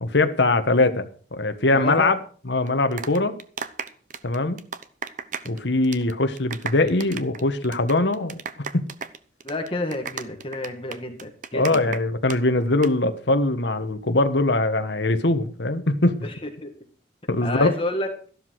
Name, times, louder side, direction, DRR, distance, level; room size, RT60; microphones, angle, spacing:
voice 1, 0.0-2.2 2.4-3.4 4.2-4.6 5.4-8.4 8.7-8.8 11.5-16.2 17.3-17.7, left 2 dB, 70° left, 1.4 m, -22 dB
voice 2, 1.7-2.1 9.4-12.0 16.2-16.3 16.6-16.7 17.4-18.1, left 1 dB, 30° left, 1.9 m, -30 dB
sound 1, 2.7-5.6 5.8-6.1 6.4-12.4 12.7-12.9, right 6 dB, 45° right, 0.8 m, -34 dB
13.5 x 12.0 x 4.8 m
head